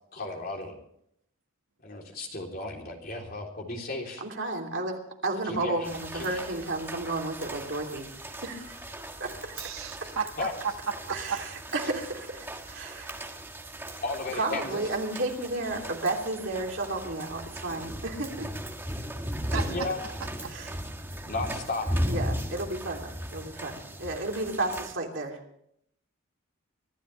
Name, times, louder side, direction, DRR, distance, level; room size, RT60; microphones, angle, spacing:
voice 1, 0.1-0.8 1.8-4.2 5.5-5.7 6.1-6.2 10.4-10.5 14.0-14.8 19.7-20.0 21.3-21.9, left 2 dB, 45° left, 0 dB, 3.4 m, -34 dB
voice 2, 4.2-8.8 9.2-9.6 10.0-10.1 11.1-13.2 14.3-18.5 19.5-19.6 20.4-20.8 22.0-25.4, right 2 dB, 60° right, 1 dB, 3.1 m, -33 dB
sound 1, 5.8-24.9, equal, 10° right, 1.4 m, -37 dB
voice 3, 9.6-11.4 19.5-19.9 20.2-20.5, right 6 dB, 85° right, 6 dB, 1.6 m, -34 dB
25.0 x 13.5 x 3.4 m, 0.71 s
head